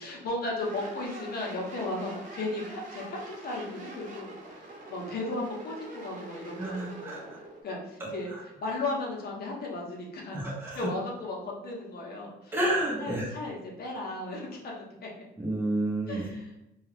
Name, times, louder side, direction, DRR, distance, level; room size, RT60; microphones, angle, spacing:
voice 1, 0.0-7.3 7.6-10.4 10.7-12.6 13.0-15.1 16.1-16.6, left 2 dB, 60° left, -2 dB, 0.9 m, -35 dB
sound 1, 0.6-7.6, right 2 dB, 45° right, 0.9 m, -45 dB
voice 2, 6.6-7.4 8.0-8.1 10.3-10.8 12.5-13.3 15.4-16.2, right 1 dB, 10° right, -4 dB, 0.8 m, -30 dB
2.3 x 2.3 x 3.3 m, 0.86 s
cardioid pair, 95°, 18 cm